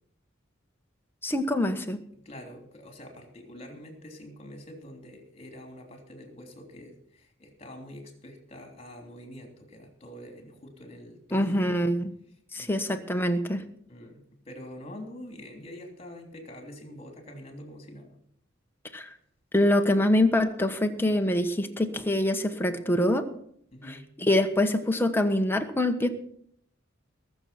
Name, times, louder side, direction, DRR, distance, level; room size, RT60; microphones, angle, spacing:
voice 1, 1.2-2.0 11.3-12.1 12.5-13.6 18.9-19.1 19.5-23.3 23.9-26.1, left 1 dB, 10° left, 5 dB, 1.2 m, -25 dB
voice 2, 2.2-11.7 12.5-12.8 13.9-18.2 23.7-24.1, left 1 dB, 30° left, 3 dB, 3.2 m, -45 dB
21.0 x 7.0 x 5.9 m, 0.68 s
head